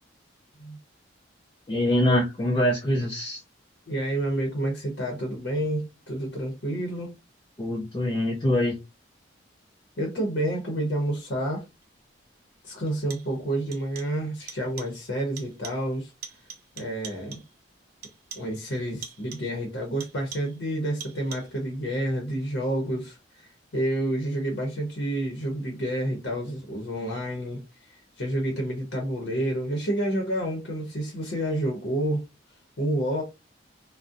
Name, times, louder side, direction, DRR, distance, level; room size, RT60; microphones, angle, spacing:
voice 1, 1.7-3.4 7.6-8.8, left 1 dB, 25° left, 0.3 m, -24 dB
voice 2, 3.9-7.1 10.0-11.6 12.6-16.1 16.8-17.4 18.3-23.2 23.7-27.6 28.2-32.2 32.8-33.2, right 1 dB, 65° left, 0.7 m, -29 dB
sound 1, 11.8-11.9 12.9-13.4 13.7-14.2 14.5-15.0 15.4-15.9 16.2-17.6 18.0-18.6 19.0-19.6 20.0-20.6 21.0-21.6, right 7 dB, 50° right, 0.5 m, -44 dB
2.5 x 2.0 x 2.4 m
head